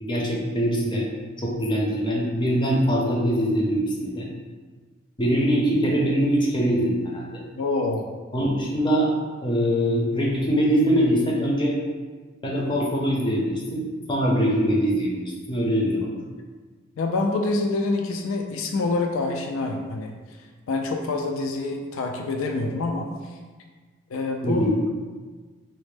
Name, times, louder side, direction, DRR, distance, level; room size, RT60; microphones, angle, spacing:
voice 1, 0.0-1.1 1.4-4.3 5.2-7.4 8.3-9.1 9.4-11.7 12.4-16.1 24.4-24.7, equal, 25° left, -3 dB, 0.5 m, -23 dB
voice 2, 7.6-8.1 17.0-20.1 20.7-23.1 24.1-24.7, left 3 dB, 70° left, 3 dB, 0.3 m, -26 dB
4.1 x 2.0 x 3.2 m, 1.4 s
head